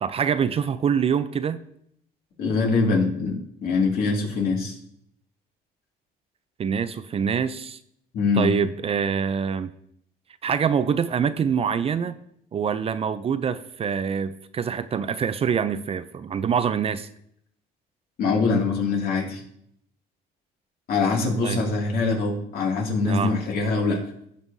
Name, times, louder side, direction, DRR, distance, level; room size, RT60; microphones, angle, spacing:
voice 1, 0.0-1.6 6.6-7.8 8.4-9.7 10.4-12.2 12.5-17.1 21.4-21.6 23.1-23.3, right 7 dB, 35° right, 12 dB, 0.4 m, -25 dB
voice 2, 2.4-4.8 8.1-8.6 18.2-19.4 20.9-24.0, left 4 dB, 65° left, 0 dB, 2.3 m, -23 dB
16.5 x 5.5 x 2.7 m, 0.72 s
cardioid pair, 110°, 17 cm